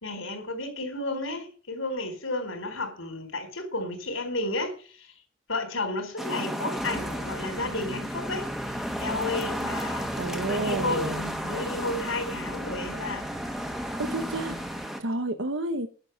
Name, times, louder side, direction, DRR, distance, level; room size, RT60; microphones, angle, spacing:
voice 1, 0.0-5.1 5.5-13.3, left 2 dB, 80° left, 4.3 m, -32 dB
sound 1, 6.2-15.0, equal, ahead, 1.5 m, -33 dB
sound 2, 6.8-14.9, right 1 dB, 20° right, 0.8 m, -42 dB
voice 2, 10.1-11.2 14.0-14.6 15.0-15.9, right 2 dB, 65° right, 1.0 m, -30 dB
11.0 x 7.1 x 9.3 m
head